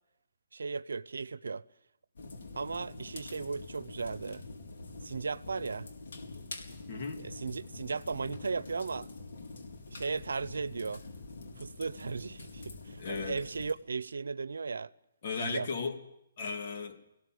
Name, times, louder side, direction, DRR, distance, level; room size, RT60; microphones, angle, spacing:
voice 1, 0.5-1.6 2.6-4.4 5.0-5.9 7.2-9.1 9.9-11.0 11.6-14.9 15.4-15.7, right 4 dB, 85° right, 0.7 m, -36 dB
sound 1, 2.2-13.7, left 3 dB, 75° left, 4.5 m, -46 dB
voice 2, 6.9-7.3 13.0-13.4 15.2-16.0 16.4-17.0, left 5 dB, 50° left, 2.8 m, -36 dB
20.0 x 17.0 x 9.6 m
hypercardioid pair, 150°, 0 cm